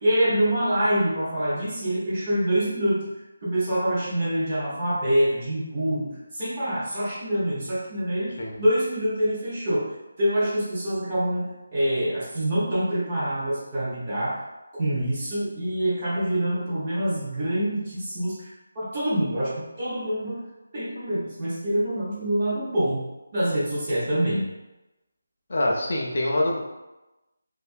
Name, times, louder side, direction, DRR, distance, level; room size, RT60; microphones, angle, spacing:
voice 1, 0.0-3.1 3.4-9.9 10.2-14.4 14.7-20.4 20.7-23.0 23.3-24.5, right 1 dB, 20° right, -7 dB, 0.6 m, -25 dB
voice 2, 25.5-26.6, left 1 dB, 45° left, -1 dB, 0.4 m, -25 dB
2.6 x 2.3 x 2.5 m, 1.0 s
figure-of-eight pair, 180°, 0 cm